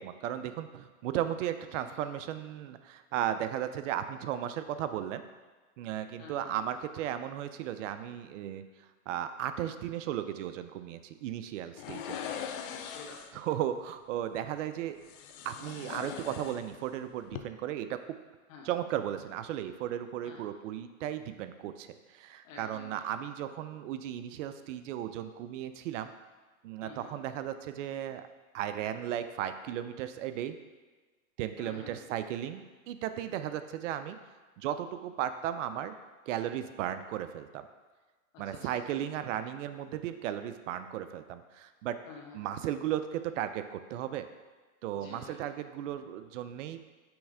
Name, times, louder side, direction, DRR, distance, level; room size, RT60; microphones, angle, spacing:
voice 1, 0.0-5.2 5.8-8.7 9.1-12.2 13.3-15.0 15.4-18.0 18.6-26.1 26.6-28.3 28.5-30.6 31.4-34.2 34.6-35.9 36.3-37.7 38.4-42.0 42.3-44.3 44.8-46.8, right 11 dB, 60° right, 10 dB, 0.5 m, -35 dB
voice 2, 6.2-6.5 11.8-13.2 18.5-18.7 20.2-20.4 22.4-23.0 26.8-27.1 31.6-31.9 38.3-38.7 42.1-42.4 44.9-45.4, left 5 dB, 65° left, 0 dB, 1.5 m, -49 dB
sound 1, 11.8-13.4 15.0-17.0 17.2-17.4, left 9 dB, 40° left, 0.5 m, -41 dB
6.1 x 3.2 x 4.9 m, 1.3 s
supercardioid pair, 135°, 41 cm